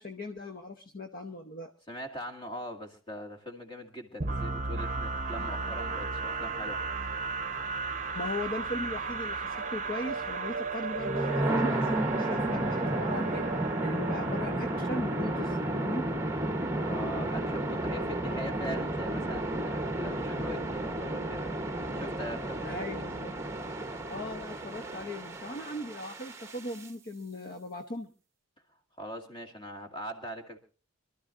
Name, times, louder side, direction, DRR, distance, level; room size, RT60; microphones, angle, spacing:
voice 1, 0.0-1.7 5.4-5.5 8.1-16.1 22.6-23.3 24.1-28.1, left 1 dB, 45° left, 0.9 m, -38 dB
voice 2, 1.9-6.8 16.7-21.5 21.9-22.9 29.0-30.6, equal, 25° left, 2.1 m, -41 dB
sound 1, 4.2-16.0, right 4 dB, 40° right, 0.8 m, -35 dB
Long Drum Hit Woosh, 10.9-26.9, right 1 dB, 15° right, 1.0 m, -32 dB
26.0 x 13.0 x 2.5 m
head